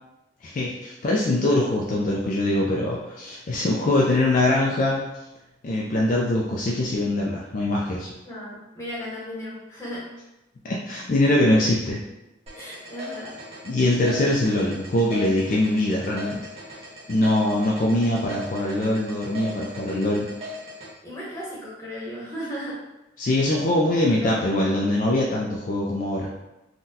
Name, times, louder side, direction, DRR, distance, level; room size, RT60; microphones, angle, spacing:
voice 1, 0.4-5.0 5.6-8.1 10.6-12.0 13.7-16.4 16.8-20.3 23.2-26.3, left 1 dB, 45° left, -3 dB, 0.3 m, -23 dB
voice 2, 8.2-10.1 12.5-13.4 21.0-22.8 24.2-24.4, equal, 15° left, -7 dB, 0.9 m, -35 dB
sound 1, 12.5-20.9, left 1 dB, 35° right, 0.8 m, -38 dB
3.7 x 2.2 x 2.7 m, 0.97 s
head